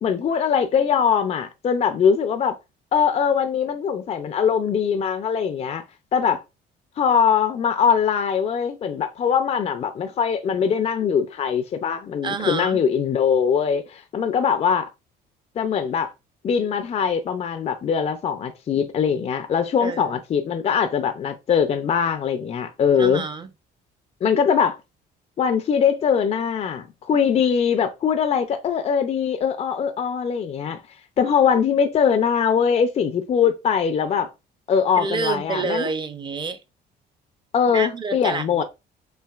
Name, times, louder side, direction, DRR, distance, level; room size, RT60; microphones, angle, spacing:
voice 1, 0.0-2.6 2.9-5.8 6.1-6.4 7.0-14.9 15.6-16.1 16.4-23.2 24.2-24.8 25.4-30.8 31.2-34.3 34.7-35.9 37.5-38.6, left 7 dB, 40° left, 0.5 m, -21 dB
voice 2, 12.2-12.8 19.8-20.2 23.0-23.5 35.0-36.6 37.7-38.6, right 4 dB, 25° right, 0.7 m, -28 dB
5.6 x 2.8 x 2.4 m
cardioid pair, 110°, 17 cm